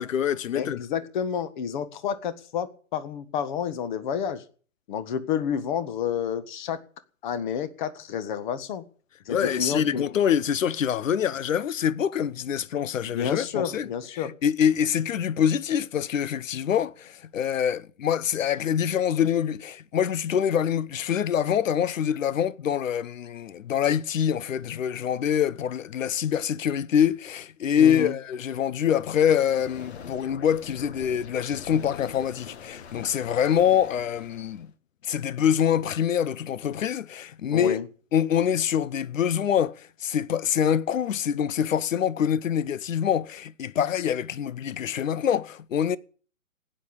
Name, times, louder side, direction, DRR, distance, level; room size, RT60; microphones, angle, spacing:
voice 1, 0.0-0.8 9.3-13.9 14.1-34.7 35.0-37.8 38.1-46.0, left 9 dB, 70° left, 1.0 m, -25 dB
voice 2, 0.5-4.4 4.9-6.8 7.2-8.8 9.2-10.0 13.0-14.3 27.8-28.1 37.5-37.9, left 8 dB, 35° left, 1.8 m, -30 dB
sound 1, 28.9-34.7, left 6 dB, 50° left, 1.8 m, -44 dB
16.0 x 10.0 x 8.8 m
hypercardioid pair, 150°, 41 cm